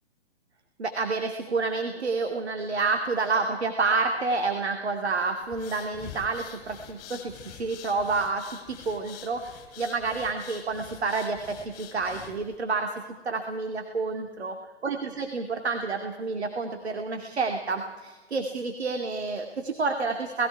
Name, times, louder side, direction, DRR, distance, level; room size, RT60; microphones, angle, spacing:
voice 1, 0.8-12.9 13.2-14.5 14.8-20.5, right 4 dB, 75° right, 5 dB, 2.5 m, -29 dB
sound 1, 5.4-12.6, left 10 dB, 30° left, 5.0 m, -46 dB
27.5 x 20.0 x 4.7 m, 1.2 s
figure-of-eight pair, 130°, 33 cm